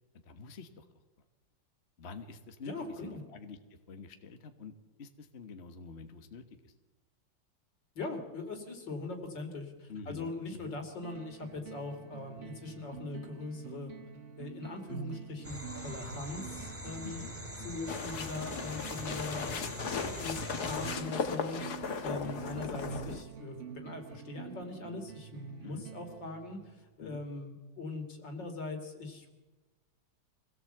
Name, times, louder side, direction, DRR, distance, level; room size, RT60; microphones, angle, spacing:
voice 1, 0.2-0.8 2.0-4.7 5.0-6.7 9.9-10.8 17.0-17.4 22.1-22.4 25.6-25.9 27.0-27.2, left 4 dB, 40° left, 7 dB, 1.5 m, -47 dB
voice 2, 2.6-3.2 7.9-13.9 14.4-17.2 17.6-19.7 19.9-29.3, left 3 dB, 75° left, 5 dB, 3.5 m, -41 dB
sound 1, 11.0-27.0, right 7 dB, 45° right, 1.3 m, -47 dB
sound 2, 15.4-21.0, equal, 5° right, 2.1 m, -43 dB
sound 3, 17.9-23.2, left 5 dB, 60° left, 1.9 m, -37 dB
24.5 x 17.0 x 7.9 m, 1.2 s
omnidirectional pair, 2.0 m